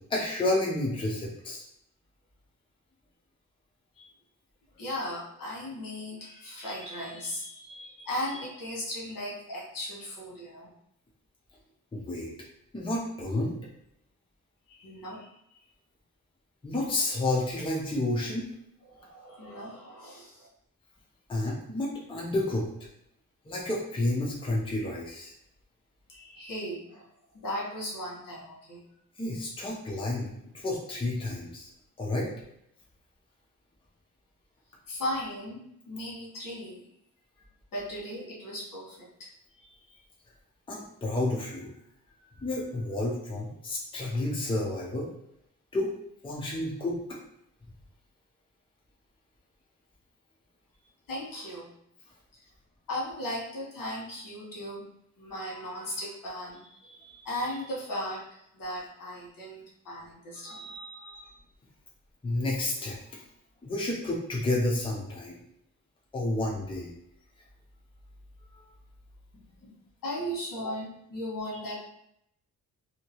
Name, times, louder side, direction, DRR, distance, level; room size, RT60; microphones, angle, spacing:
voice 1, 0.0-1.6 11.9-12.3 12.7-13.6 16.6-18.4 21.3-22.7 23.5-25.3 29.2-30.3 30.5-31.7 32.0-32.3 40.7-41.7 42.4-45.1 45.7-45.9 46.2-47.2 62.2-63.2 63.6-65.4 66.1-66.9 68.5-68.6, left 2 dB, 15° left, -3 dB, 0.6 m, -30 dB
voice 2, 4.8-10.7 14.7-15.6 18.9-20.5 26.1-27.1 27.3-28.8 34.9-36.9 37.7-39.3 39.6-40.0 51.1-51.7 52.9-54.8 55.2-61.3 69.3-69.7 70.0-71.8, left 1 dB, 70° left, -4 dB, 1.4 m, -37 dB
2.8 x 2.8 x 2.9 m, 0.77 s
cardioid pair, 115°, 33 cm